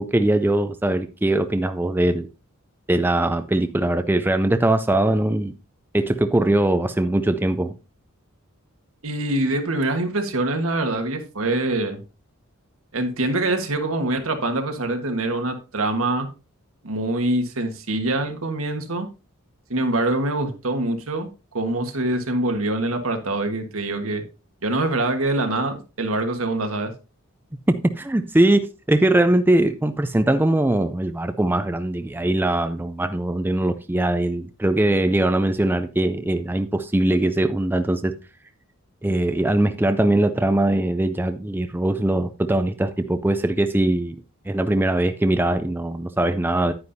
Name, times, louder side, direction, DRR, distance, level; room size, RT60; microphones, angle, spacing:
voice 1, 0.0-2.3 2.9-5.5 5.9-7.7 27.7-38.1 39.0-44.2 44.5-46.7, right 1 dB, 10° right, 0.4 m, -21 dB
voice 2, 9.0-12.0 12.9-16.3 16.8-19.1 19.7-24.2 24.6-26.9, right 2 dB, 75° right, 1.5 m, -24 dB
9.7 x 9.5 x 2.7 m
head